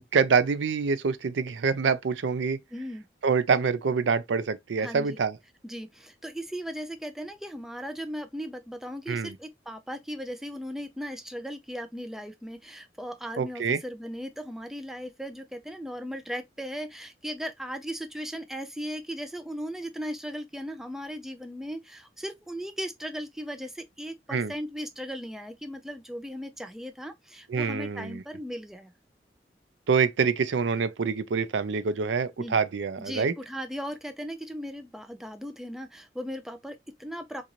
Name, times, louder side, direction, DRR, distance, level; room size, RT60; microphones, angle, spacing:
voice 1, 0.0-2.6 3.2-5.4 9.1-9.3 13.4-13.8 24.3-24.5 27.5-28.2 29.9-33.3, right 5 dB, 85° right, 0.4 m, -26 dB
voice 2, 2.7-3.0 4.8-5.2 5.6-28.9 32.4-32.6 33.0-37.4, equal, ahead, 0.4 m, -37 dB
3.8 x 2.5 x 2.9 m
head